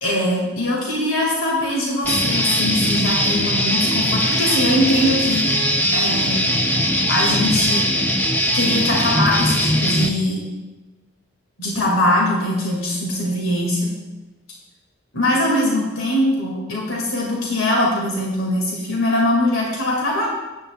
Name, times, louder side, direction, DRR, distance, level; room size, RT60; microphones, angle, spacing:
voice 1, 0.0-5.5 5.9-6.4 7.1-7.8 8.5-10.4 11.6-13.9 15.1-20.3, left 1 dB, 80° left, -2 dB, 2.3 m, -21 dB
Guitar, 2.0-10.1, equal, 10° left, 0.6 m, -20 dB
14.0 x 10.5 x 2.4 m, 1.1 s
head